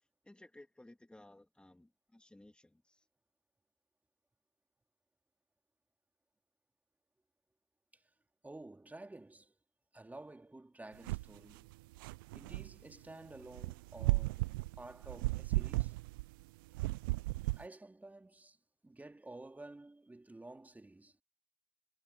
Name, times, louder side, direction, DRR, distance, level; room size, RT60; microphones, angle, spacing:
voice 1, 0.0-3.1, left 1 dB, 10° left, 2.4 m, -59 dB
voice 2, 8.4-9.5 9.9-11.7 12.3-14.5 14.8-16.0 17.6-18.6 18.8-21.2, right 2 dB, 15° right, 3.2 m, -52 dB
sound 1, 11.1-11.4 11.7-12.7 13.5-16.4 16.7-17.6, right 22 dB, 75° right, 0.4 m, -35 dB
hypercardioid pair, 60°, 11 cm